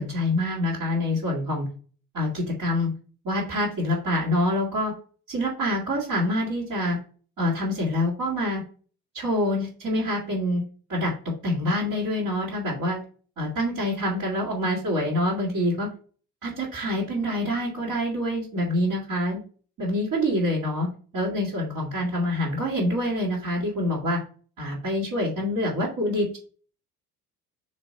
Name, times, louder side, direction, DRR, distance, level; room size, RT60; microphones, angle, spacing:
voice 1, 0.0-1.6 2.1-2.9 3.2-4.9 5.3-7.0 7.4-8.6 9.1-10.6 10.9-11.1 11.4-13.0 13.4-15.9 16.4-19.4 19.8-20.9 21.1-24.2 24.6-26.4, left 1 dB, 40° right, -7 dB, 3.0 m, -26 dB
6.6 x 3.2 x 5.7 m, 0.40 s
figure-of-eight pair, 55°, 46 cm